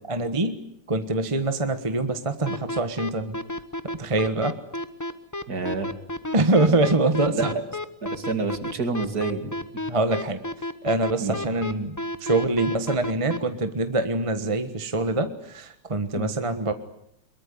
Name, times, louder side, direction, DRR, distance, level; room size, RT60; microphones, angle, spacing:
voice 1, 0.1-0.6 0.9-3.4 4.0-4.5 6.3-7.5 9.9-10.4 10.8-16.7, right 2 dB, 20° right, 9 dB, 1.1 m, -24 dB
sound 1, 2.5-13.4, left 1 dB, 15° left, 0.6 m, -31 dB
voice 2, 5.5-5.9 7.3-7.6 8.0-9.5 11.2-11.4 16.2-16.3, right 3 dB, 45° right, 8 dB, 2.8 m, -28 dB
22.5 x 22.5 x 9.6 m, 0.74 s
omnidirectional pair, 2.3 m